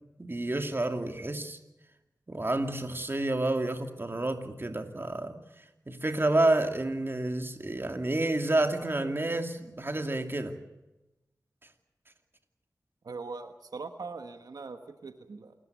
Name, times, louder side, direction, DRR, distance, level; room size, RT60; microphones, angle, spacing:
voice 1, 0.2-1.6 2.3-5.4 5.9-10.6, right 2 dB, 35° right, 6 dB, 2.6 m, -29 dB
voice 2, 13.0-15.5, right 4 dB, 85° right, 7 dB, 1.4 m, -41 dB
28.5 x 14.0 x 9.5 m, 1.0 s
cardioid pair, 50°, 7 cm